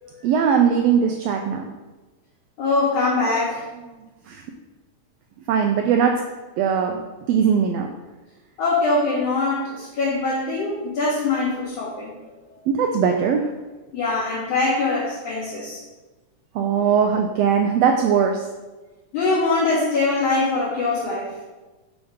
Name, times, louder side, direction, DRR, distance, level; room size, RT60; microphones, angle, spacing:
voice 1, 0.2-1.6 4.3-4.4 5.5-6.2 6.6-7.0 7.3-7.9 12.7-13.5 16.5-18.5, right 7 dB, 90° right, 3 dB, 1.4 m, -20 dB
voice 2, 2.6-3.7 8.6-12.1 13.9-15.8 19.1-21.3, left 3 dB, 70° left, -14 dB, 4.0 m, -22 dB
7.1 x 3.9 x 5.0 m, 1.2 s
omnidirectional pair, 3.5 m